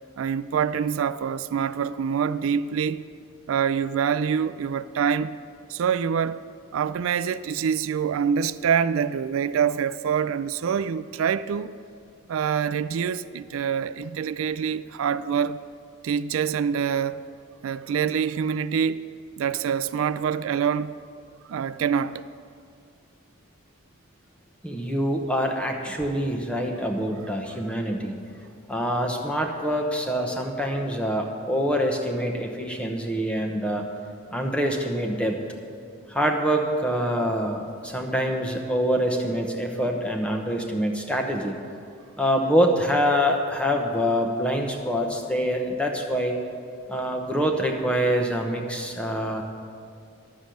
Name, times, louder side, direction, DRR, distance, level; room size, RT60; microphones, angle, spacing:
voice 1, 0.2-3.0 3.5-5.4 5.7-6.4 6.7-11.7 12.3-15.6 16.0-17.3 17.6-19.0 19.4-20.9 21.5-22.3, right 7 dB, 70° right, 0.3 m, -25 dB
voice 2, 24.6-28.2 28.7-33.9 34.3-35.4 36.1-41.6 42.2-46.4 46.9-49.4, equal, 5° left, 0.9 m, -25 dB
11.5 x 7.2 x 7.8 m
head